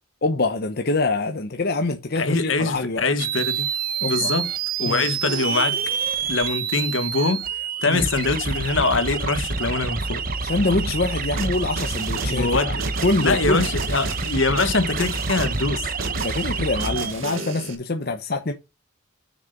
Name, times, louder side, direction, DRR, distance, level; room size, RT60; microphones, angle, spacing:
voice 1, 0.2-3.0 4.0-4.3 4.8-5.0 7.9-8.1 10.4-12.7 13.0-13.6 16.2-18.5, left 2 dB, 50° left, 0.9 m, -25 dB
voice 2, 2.1-3.7 4.0-4.5 4.8-5.8 6.3-7.4 7.8-10.2 12.3-12.8 13.2-15.9, left 3 dB, 70° left, 1.5 m, -23 dB
sound 1, 3.2-17.1, right 5 dB, 45° right, 1.0 m, -27 dB
sound 2, 11.4-17.8, right 4 dB, 85° right, 1.9 m, -34 dB
6.7 x 6.5 x 5.3 m
head